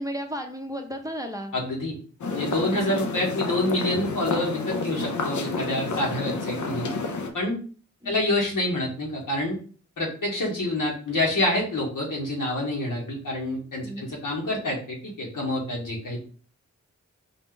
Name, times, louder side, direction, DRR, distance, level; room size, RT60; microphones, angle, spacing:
voice 1, 0.0-1.5 2.7-3.0 8.0-8.2 13.8-14.1, equal, 10° right, 3 dB, 0.6 m, -34 dB
voice 2, 1.5-1.9 2.3-6.9 7.3-7.6 8.0-9.6 10.0-16.2, left 1 dB, 85° left, -3 dB, 1.5 m, -27 dB
sound 1, 2.2-7.3, left 3 dB, 70° left, 0.6 m, -30 dB
4.2 x 2.4 x 3.8 m, 0.42 s
cardioid pair, 50°, 31 cm